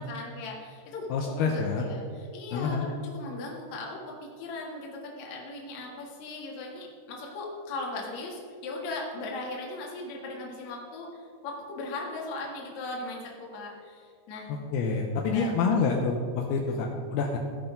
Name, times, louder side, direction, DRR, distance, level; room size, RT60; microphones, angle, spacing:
voice 1, 0.0-14.5 15.3-15.5 16.7-16.8, left 2 dB, 55° left, -2 dB, 2.2 m, -38 dB
voice 2, 1.1-1.9 2.5-2.9 14.5-17.4, left 4 dB, 85° left, 1 dB, 2.2 m, -27 dB
16.0 x 5.6 x 5.2 m, 2.1 s
omnidirectional pair, 5.5 m